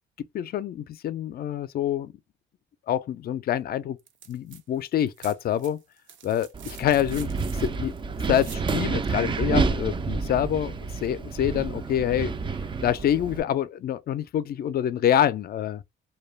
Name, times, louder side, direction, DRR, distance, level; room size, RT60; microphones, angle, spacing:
voice 1, 0.3-2.1 2.9-4.0 4.3-5.8 6.2-7.9 8.3-12.3 12.8-15.8, left 10 dB, 50° left, 0.4 m, -26 dB
sound 1, 4.0-4.6 4.9-8.7 10.4-10.5, right 8 dB, 75° right, 0.6 m, -47 dB
Wind, 6.5-13.4, right 4 dB, 25° right, 0.3 m, -29 dB
2.2 x 2.2 x 3.2 m
cardioid pair, 90°, 20 cm